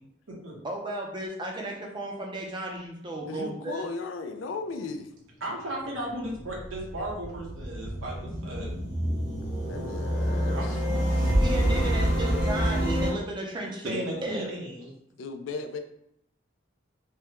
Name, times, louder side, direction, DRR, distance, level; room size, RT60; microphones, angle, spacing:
voice 1, 0.6-3.9 11.4-14.5, right 1 dB, 25° right, 0 dB, 0.5 m, -34 dB
voice 2, 3.3-5.1 9.5-10.8 15.2-15.8, left 4 dB, 80° left, 7 dB, 0.4 m, -36 dB
voice 3, 5.4-8.7 9.0-9.2 10.5-11.4 13.8-14.9, right 1 dB, 90° right, -3 dB, 1.0 m, -36 dB
sound 1, 5.8-13.1, equal, 5° left, 0.8 m, -27 dB
3.4 x 2.1 x 2.9 m, 0.75 s
head